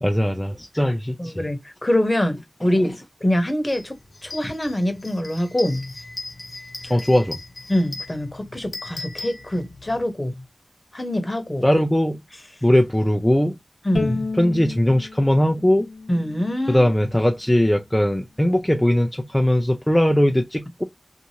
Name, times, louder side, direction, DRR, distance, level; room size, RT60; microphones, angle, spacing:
voice 1, 0.0-1.3 6.9-7.4 11.6-12.2 12.6-13.5 14.4-15.9 16.7-20.8, left 1 dB, 10° left, 0.5 m, -19 dB
voice 2, 1.2-3.9 4.2-5.9 7.7-10.4 10.9-11.6 13.8-14.3 16.1-16.9, left 1 dB, 30° left, 1.0 m, -24 dB
sound 1, 3.7-3.8 4.2-10.0, left 2 dB, 65° left, 1.1 m, -38 dB
Bowed string instrument, 13.9-17.2, left 3 dB, 80° left, 0.7 m, -31 dB
2.8 x 2.5 x 2.7 m
wide cardioid pair, 50°, 0 cm